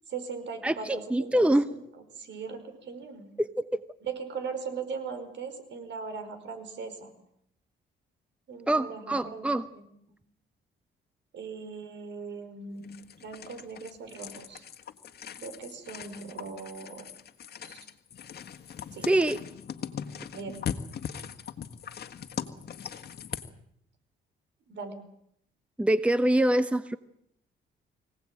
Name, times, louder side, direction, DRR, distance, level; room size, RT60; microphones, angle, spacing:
voice 1, 0.1-1.8 2.1-3.3 4.0-7.1 8.5-9.8 11.3-14.6 15.4-17.1 17.6-17.9 18.9-19.1 20.3-20.6 24.7-25.0, right 5 dB, 65° right, 8 dB, 5.1 m, -39 dB
voice 2, 0.6-1.7 3.4-3.8 8.7-9.7 19.0-19.4 25.8-27.0, right 1 dB, 5° right, 13 dB, 0.9 m, -25 dB
sound 1, 12.8-23.5, left 8 dB, 55° left, 1.7 m, -40 dB
24.5 x 17.5 x 8.9 m, 0.73 s
cardioid pair, 90°, 20 cm